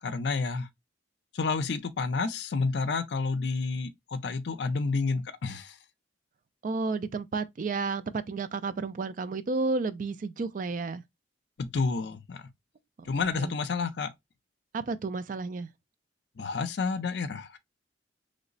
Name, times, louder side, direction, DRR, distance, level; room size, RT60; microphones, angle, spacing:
voice 1, 0.0-0.7 1.3-5.8 11.6-12.4 13.1-14.1 16.4-17.6, left 4 dB, 65° left, 0.5 m, -30 dB
voice 2, 6.6-11.0 13.0-13.5 14.7-15.7, right 4 dB, 45° right, 0.3 m, -32 dB
3.2 x 2.0 x 3.8 m
head